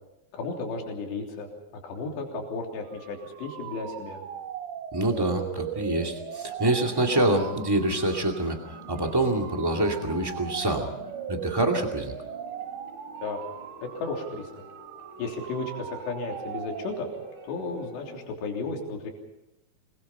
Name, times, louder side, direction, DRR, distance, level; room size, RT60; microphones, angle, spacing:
voice 1, 0.3-1.5 1.7-4.2 13.2-13.4 14.0-14.5 15.2-17.1 17.4-19.1, left 3 dB, 75° left, 0 dB, 5.4 m, -34 dB
sound 1, 2.9-17.6, right 9 dB, 70° right, 3.0 m, -39 dB
voice 2, 4.9-10.9 11.3-12.1, right 1 dB, 15° right, 2 dB, 0.7 m, -26 dB
sound 2, 6.5-18.2, right 1 dB, 90° right, 9.5 m, -49 dB
26.5 x 21.5 x 5.6 m, 0.91 s
omnidirectional pair, 5.1 m